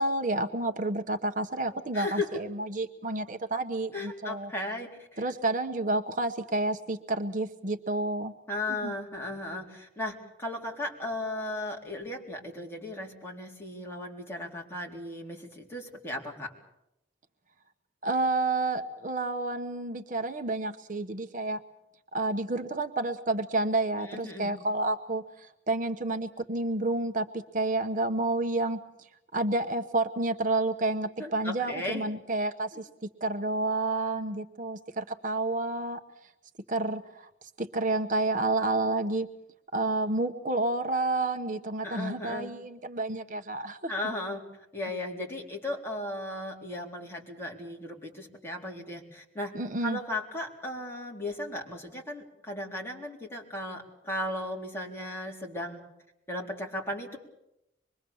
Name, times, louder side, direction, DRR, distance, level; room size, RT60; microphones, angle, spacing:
voice 1, 0.0-4.5 5.2-8.3 8.8-8.9 18.0-21.6 22.1-28.8 29.3-32.9 33.2-36.0 36.7-37.3 37.6-39.3 39.7-43.9 49.5-50.0, right 2 dB, 45° right, 7 dB, 1.0 m, -30 dB
voice 2, 1.9-2.4 3.9-5.3 8.5-16.5 23.9-24.6 31.2-32.0 41.8-42.5 43.9-44.4 44.7-49.5 49.8-55.8 56.3-57.2, left 1 dB, 15° left, -1 dB, 4.0 m, -36 dB
25.5 x 22.5 x 7.1 m, 0.85 s
head